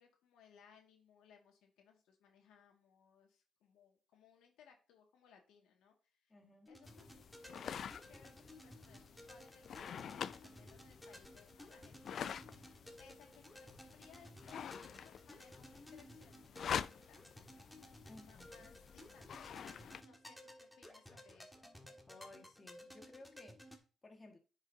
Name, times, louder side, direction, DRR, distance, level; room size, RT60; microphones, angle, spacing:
voice 1, 0.0-5.9 6.2-6.3 6.7-12.5 13.0-17.3 18.3-21.7, left 7 dB, 85° left, 1.9 m, -65 dB
voice 2, 6.3-6.7 18.1-18.5 22.1-24.4, left 2 dB, 25° left, 1.7 m, -58 dB
sound 1, 6.7-23.8, left 1 dB, 5° left, 1.5 m, -57 dB
sound 2, 6.8-20.0, left 8 dB, 60° left, 0.3 m, -47 dB
9.6 x 5.5 x 2.7 m
cardioid pair, 90°, 0 cm